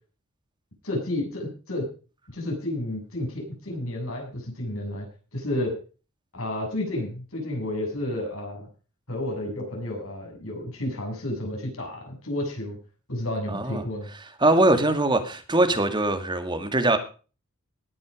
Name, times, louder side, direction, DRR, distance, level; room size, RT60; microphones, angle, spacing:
voice 1, 0.8-1.8 2.3-5.1 5.3-5.8 6.3-8.7 9.1-12.8 13.1-14.1, left 1 dB, 75° left, 1 dB, 7.3 m, -31 dB
voice 2, 13.5-13.8 14.4-17.0, right 2 dB, 20° right, 7 dB, 2.1 m, -22 dB
18.5 x 8.6 x 5.0 m, 0.37 s
head